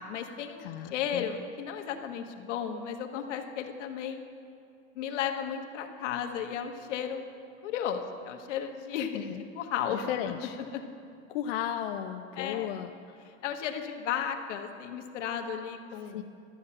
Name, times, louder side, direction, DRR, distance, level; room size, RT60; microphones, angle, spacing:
voice 1, 0.0-4.2 4.9-7.2 7.6-10.1 10.6-10.8 12.4-12.8 13.2-16.2, left 8 dB, 85° left, 4 dB, 1.3 m, -34 dB
voice 2, 0.6-1.3 9.1-9.4 9.9-10.6 11.3-12.9 16.1-16.2, left 10 dB, 55° left, 5 dB, 0.6 m, -35 dB
12.0 x 7.3 x 8.8 m, 2.4 s
supercardioid pair, 170°, 35 cm